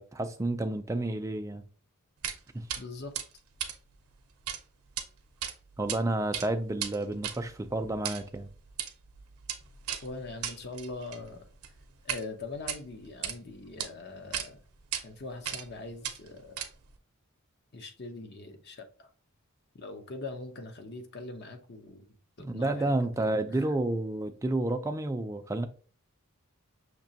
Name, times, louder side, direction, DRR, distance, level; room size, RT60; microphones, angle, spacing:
voice 1, 0.0-1.6 2.5-2.7 5.8-8.5 22.4-25.7, right 2 dB, 15° right, 0.4 m, -30 dB
sound 1, 2.2-2.4 2.7-2.8 3.1-4.6 4.9-5.0 5.4-6.0 6.2-12.2 12.6-13.4 13.8-13.9 14.3-14.5 14.9-15.0 15.4-15.7 16.0-17.0, right 9 dB, 80° right, 0.6 m, -37 dB
voice 2, 2.8-3.1 10.0-11.5 12.0-14.6 15.0-16.6 17.7-19.1 19.7-23.7, left 3 dB, 50° left, 0.7 m, -42 dB
6.0 x 2.9 x 2.8 m
head